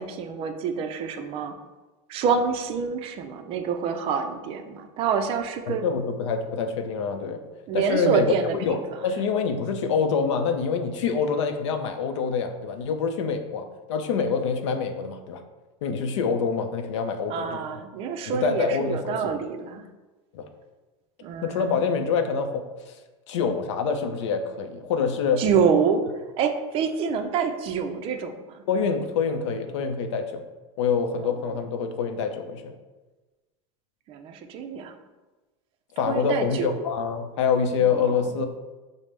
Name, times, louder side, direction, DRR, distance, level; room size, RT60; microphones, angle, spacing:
voice 1, 0.0-1.6 2.1-5.8 7.7-8.8 17.3-19.9 21.2-21.8 25.4-26.0 26.4-28.6 31.2-31.3 34.1-34.9 36.1-36.8 37.9-38.2, right 6 dB, 40° right, 7 dB, 0.4 m, -27 dB
voice 2, 5.7-7.4 7.7-8.3 8.6-15.4 15.8-17.8 18.3-19.3 20.3-20.4 21.4-22.9 23.3-25.4 28.7-30.4 30.8-32.7 36.0-38.5, left 5 dB, 85° left, 7 dB, 0.5 m, -26 dB
5.0 x 2.0 x 3.2 m, 1.2 s
supercardioid pair, 135°, 15 cm